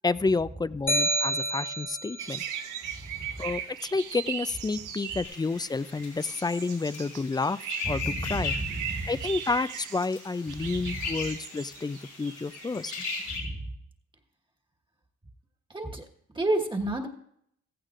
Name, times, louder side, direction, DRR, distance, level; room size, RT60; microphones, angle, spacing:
voice 1, 0.0-2.4 3.4-7.6 7.9-8.5 9.1-13.1, left 3 dB, 15° left, 16 dB, 0.3 m, -30 dB
sound 1, 0.9-2.3, right 2 dB, 40° left, 1.4 m, -28 dB
sound 2, 2.2-13.3, right 9 dB, 90° right, 1.0 m, -39 dB
sound 3, 5.2-13.4, left 5 dB, 90° left, 4.9 m, -39 dB
voice 2, 7.8-9.2 10.7-11.1 13.3-13.6 15.7-16.1 16.3-17.1, right 2 dB, 15° right, 3 dB, 1.4 m, -31 dB
15.5 x 14.5 x 2.5 m, 0.72 s
cardioid pair, 90°, 30 cm